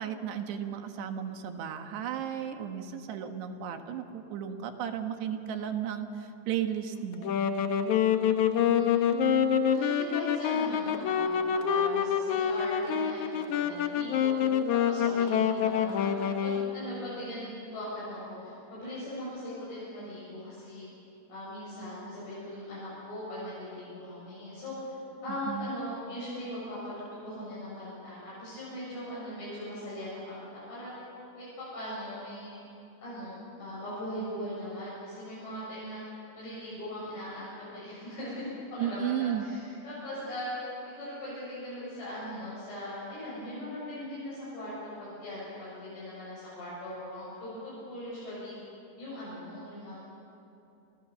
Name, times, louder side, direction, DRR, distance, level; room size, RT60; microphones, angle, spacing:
voice 1, 0.0-7.4 25.5-25.7 38.8-39.5, right 9 dB, 70° right, 6 dB, 3.4 m, -34 dB
Wind instrument woodwind instrument, 7.1-16.8, left 8 dB, 90° left, 1.6 m, -27 dB
voice 2, 8.5-8.9 9.7-14.3 14.7-16.1 16.4-20.9 21.3-24.7 25.2-30.9 31.3-32.6 33.0-36.0 36.3-40.6 40.9-44.7 45.0-48.5 49.0-50.0, left 1 dB, 65° left, -9 dB, 10.0 m, -40 dB
29.0 x 27.5 x 7.1 m, 2.9 s
omnidirectional pair, 5.3 m